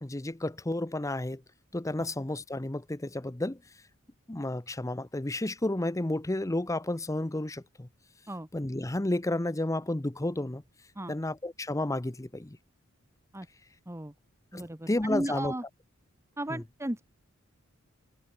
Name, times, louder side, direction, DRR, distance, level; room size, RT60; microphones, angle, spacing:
voice 1, 0.0-1.4 1.7-3.6 4.3-7.9 8.5-10.6 11.1-12.6 14.5-15.5 16.5-16.6, left 1 dB, 15° left, 0.8 m, -31 dB
voice 2, 14.5-15.6 16.4-17.0, right 1 dB, 15° right, 1.4 m, -35 dB
head